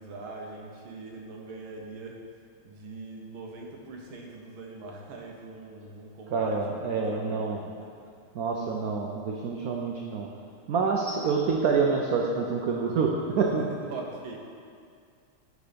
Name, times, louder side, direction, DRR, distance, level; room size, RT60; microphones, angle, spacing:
voice 1, 0.0-2.2 2.6-7.9 13.9-14.4, right 3 dB, 70° right, 0 dB, 1.8 m, -42 dB
voice 2, 6.3-7.6 8.3-10.3 10.7-13.7, right 5 dB, 85° right, -1 dB, 0.8 m, -27 dB
9.8 x 4.1 x 5.1 m, 2.3 s
omnidirectional pair, 2.3 m